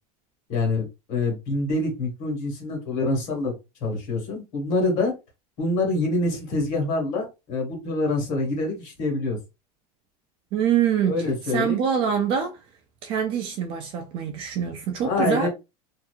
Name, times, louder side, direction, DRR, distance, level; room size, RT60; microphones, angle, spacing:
voice 1, 0.5-3.5 3.8-5.1 5.6-9.4 11.1-11.8 15.0-15.5, left 2 dB, 45° left, 1.4 m, -26 dB
voice 2, 10.5-11.2 11.5-12.6 13.0-15.5, right 8 dB, 30° right, 0.3 m, -24 dB
2.7 x 2.5 x 2.3 m
supercardioid pair, 175°, 19 cm